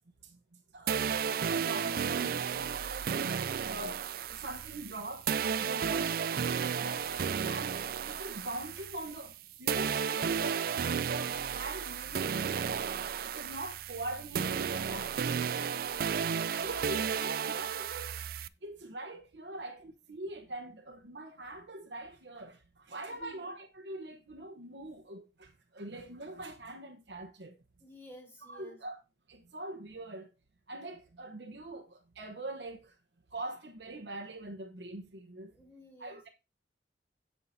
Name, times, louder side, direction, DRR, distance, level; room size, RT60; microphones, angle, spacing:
voice 1, 0.7-3.4 3.6-5.3 5.6-7.1 7.4-15.4 16.3-18.2 18.6-27.5 28.4-29.0 29.3-30.3 30.7-32.9 33.3-35.5 36.0-36.3, right 2 dB, 75° right, 1.0 m, -43 dB
sound 1, 0.9-9.4 9.7-18.5, right 7 dB, 55° right, 0.4 m, -33 dB
voice 2, 23.1-23.4 27.8-28.8 35.5-36.2, right 1 dB, 15° left, 4.0 m, -52 dB
16.5 x 5.8 x 2.8 m
head